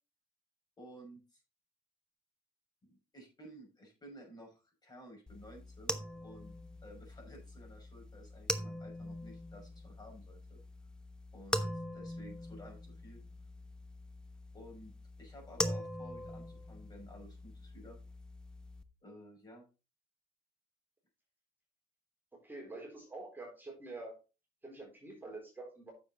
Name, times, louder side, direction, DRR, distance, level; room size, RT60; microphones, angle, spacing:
voice 1, 0.8-1.4 2.8-6.5 6.8-10.6 11.3-11.6 11.9-13.2 14.5-14.9 15.2-18.0 19.0-19.6, equal, 25° left, -1 dB, 5.9 m, -54 dB
sound 1, 5.3-18.8, equal, 5° left, 1.0 m, -42 dB
voice 2, 22.3-24.2 24.6-25.9, right 2 dB, 10° right, -3 dB, 4.1 m, -47 dB
9.1 x 7.1 x 4.1 m, 0.31 s
cardioid pair, 110°, 17 cm